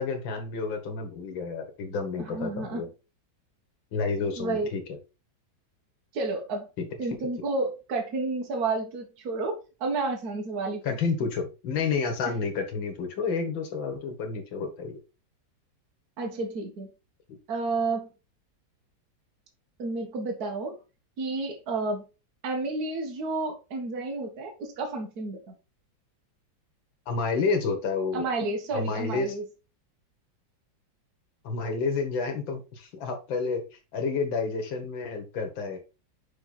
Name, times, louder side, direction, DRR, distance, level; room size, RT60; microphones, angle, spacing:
voice 1, 0.0-2.9 3.9-5.0 6.8-6.9 10.8-15.0 17.3-17.4 27.1-28.3 28.7-29.4 31.4-35.8, left 4 dB, 75° left, 2.2 m, -30 dB
voice 2, 2.2-2.8 4.4-4.7 6.1-6.7 7.0-10.8 16.2-16.9 17.5-18.1 19.8-20.8 21.2-22.0 22.4-25.6 28.1-29.4, right 3 dB, 55° right, 2.0 m, -31 dB
5.7 x 5.3 x 4.2 m
omnidirectional pair, 2.1 m